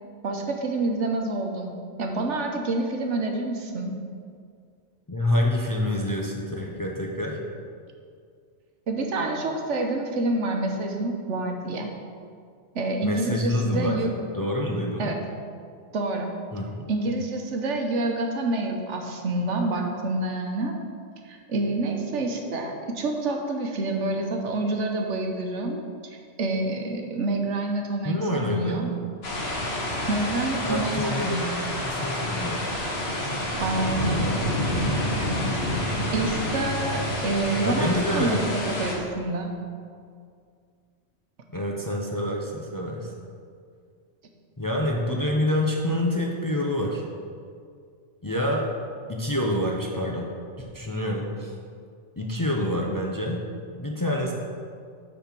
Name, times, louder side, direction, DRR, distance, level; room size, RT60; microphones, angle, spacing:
voice 1, 0.2-4.0 8.9-11.9 12.7-14.1 15.0-15.2 15.9-16.3 16.9-20.7 21.2-25.8 26.1-28.9 30.1-31.5 33.6-34.3 36.1-39.6, right 2 dB, 80° right, 3 dB, 1.2 m, -27 dB
voice 2, 5.1-7.4 13.0-14.0 14.3-15.1 16.5-16.9 28.0-28.9 30.6-31.4 31.8-32.6 37.5-38.5 41.5-43.1 44.6-47.0 48.2-48.7 49.1-50.3 50.6-51.5 52.2-53.5 53.7-54.3, left 1 dB, 20° left, -1 dB, 0.6 m, -27 dB
sound 1, 29.2-38.9, left 1 dB, 60° left, 1.5 m, -28 dB
8.6 x 4.3 x 5.9 m, 2.2 s
omnidirectional pair, 1.2 m